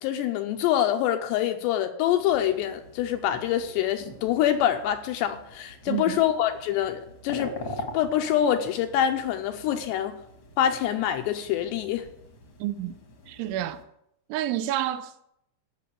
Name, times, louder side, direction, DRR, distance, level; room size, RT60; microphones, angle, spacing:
voice 1, 0.0-7.5 7.9-10.2 10.6-12.1, left 10 dB, 80° left, 2.6 m, -25 dB
sound 1, 2.2-13.8, left 2 dB, 50° left, 1.4 m, -44 dB
voice 2, 5.9-6.2 12.6-13.0 13.3-13.8 14.3-15.1, right 12 dB, 85° right, 3.1 m, -29 dB
15.0 x 6.1 x 8.3 m
omnidirectional pair, 5.4 m